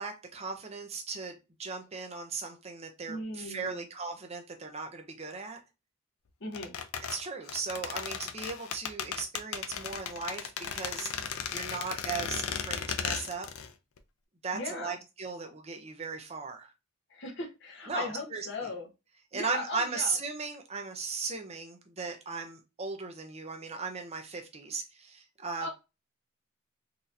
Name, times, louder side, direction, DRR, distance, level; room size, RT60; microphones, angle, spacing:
voice 1, 0.0-5.6 7.1-13.5 14.4-16.7 17.9-18.7 19.3-25.7, right 4 dB, 30° right, 4 dB, 0.6 m, -37 dB
voice 2, 3.1-3.8 6.4-6.8 14.5-15.0 17.1-18.9 19.3-20.2 25.6-25.7, left 2 dB, 55° left, 1 dB, 1.0 m, -38 dB
sound 1, 6.5-13.7 14.0-14.1, left 7 dB, 80° left, 0.5 m, -36 dB
4.0 x 2.8 x 2.5 m, 0.26 s
head